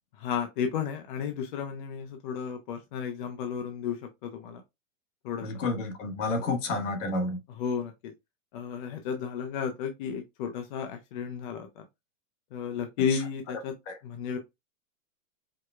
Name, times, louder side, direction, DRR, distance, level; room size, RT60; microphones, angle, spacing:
voice 1, 0.2-4.6 5.2-5.5 6.4-6.5 7.5-8.1 8.5-11.8 12.5-13.8 14.0-14.4, left 7 dB, 40° left, 0.6 m, -33 dB
voice 2, 5.4-7.4 13.9-14.0, left 2 dB, 60° left, 1.3 m, -30 dB
4.8 x 2.2 x 2.2 m
hypercardioid pair, 150°, 41 cm